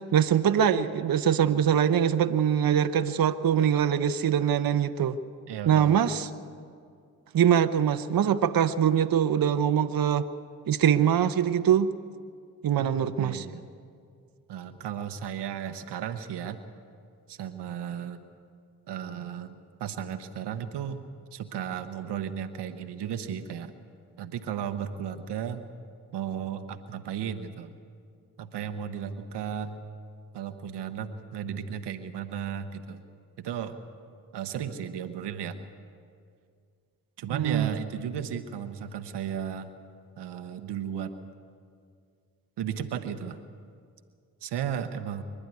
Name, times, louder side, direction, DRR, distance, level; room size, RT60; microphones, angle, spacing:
voice 1, 0.1-5.2 5.7-6.3 7.3-10.3 10.7-11.9 12.6-13.4 37.3-37.7, right 9 dB, 60° right, 10 dB, 0.8 m, -23 dB
voice 2, 5.5-6.0 12.8-13.6 14.5-16.6 17.3-18.2 18.9-21.0 21.3-23.7 24.2-25.6 26.1-27.7 28.4-29.8 30.3-33.0 33.4-33.8 34.3-35.6 37.2-39.7 40.2-41.3 42.6-43.4 44.4-45.2, right 8 dB, 90° right, 9 dB, 1.0 m, -34 dB
24.5 x 11.0 x 9.5 m, 2.2 s
supercardioid pair, 40°, 40 cm